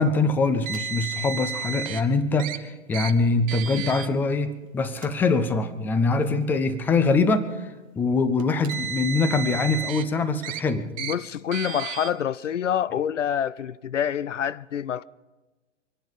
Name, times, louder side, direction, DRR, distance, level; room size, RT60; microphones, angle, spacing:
voice 1, 0.0-11.0, left 3 dB, 5° left, 0.4 m, -23 dB
Car, 0.6-2.0 2.4-2.6 2.9-3.1 3.5-4.1 4.9-5.1 6.0-6.1 8.4-10.0 10.4-10.6 11.0-11.1 11.5-12.1, right 8 dB, 25° right, 0.9 m, -32 dB
voice 2, 11.0-15.0, left 9 dB, 75° left, 0.5 m, -27 dB
24.5 x 10.5 x 5.3 m
figure-of-eight pair, 110°, 37 cm